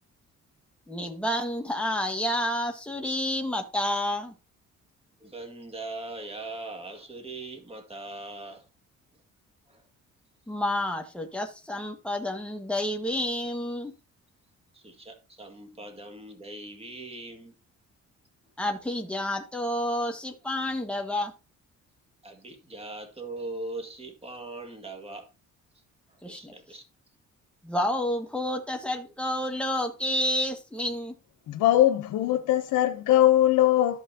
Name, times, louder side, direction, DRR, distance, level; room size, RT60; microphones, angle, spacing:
voice 1, 0.9-4.3 10.5-13.9 18.6-21.3 26.2-26.5 27.6-31.1, left 1 dB, 5° left, 1.8 m, -29 dB
voice 2, 5.2-8.7 9.7-9.8 14.7-17.5 22.2-25.3 26.1-26.9, right 2 dB, 20° right, 2.1 m, -40 dB
voice 3, 31.5-34.0, left 13 dB, 85° left, 0.9 m, -21 dB
13.0 x 5.7 x 2.9 m
cardioid pair, 90°, 30 cm